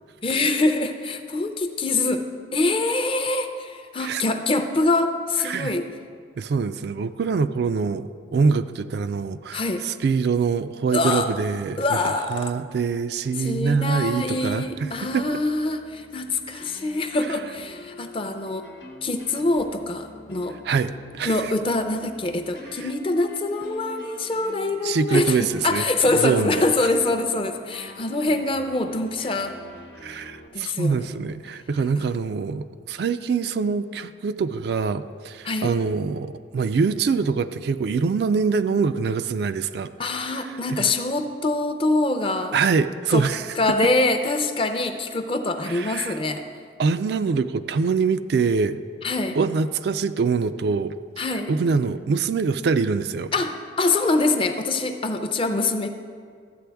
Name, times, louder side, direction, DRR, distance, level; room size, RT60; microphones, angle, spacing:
voice 1, 0.2-5.9 9.5-9.9 10.9-11.3 11.8-12.5 13.4-18.7 19.0-20.6 21.2-29.5 30.5-31.1 35.4-35.7 40.0-42.6 43.1-43.3 43.6-46.4 49.0-49.4 51.2-51.5 53.3-55.9, left 2 dB, 30° left, 7 dB, 0.5 m, -24 dB
voice 2, 6.4-15.3 20.6-21.4 22.8-22.9 24.8-26.6 30.0-39.9 40.7-40.9 42.5-43.5 45.7-46.2 46.8-48.8 49.4-50.9 51.5-53.3, right 5 dB, 55° right, 11 dB, 0.3 m, -24 dB
sound 1, 13.5-30.5, left 2 dB, 65° left, 1.0 m, -46 dB
13.0 x 8.4 x 3.4 m, 2.1 s
head